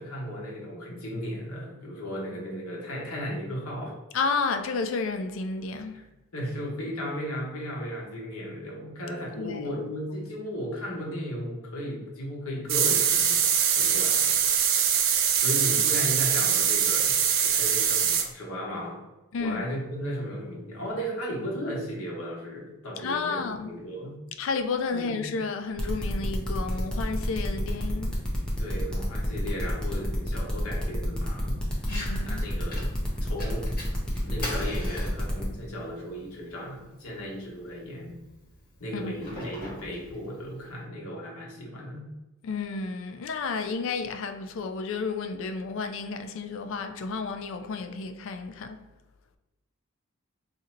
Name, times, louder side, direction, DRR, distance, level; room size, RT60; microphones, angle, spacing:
voice 1, 0.0-4.0 5.9-6.1 6.3-14.4 15.4-17.1 17.4-19.0 19.4-24.1 24.9-25.4 28.6-31.6 32.2-32.9 33.2-38.2 38.8-42.1, equal, 80° left, 1.0 m, -35 dB
voice 2, 4.1-6.0 9.4-9.7 19.3-19.6 23.0-23.8 24.4-28.2 31.9-32.4 38.9-39.1 42.4-48.8, left 4 dB, 60° left, 0.3 m, -31 dB
sound 1, 12.7-18.2, right 8 dB, 60° right, 0.4 m, -23 dB
sound 2, 25.8-35.5, equal, 5° left, 0.6 m, -32 dB
Fire, 31.8-40.8, left 1 dB, 40° left, 1.5 m, -43 dB
2.7 x 2.6 x 4.2 m
head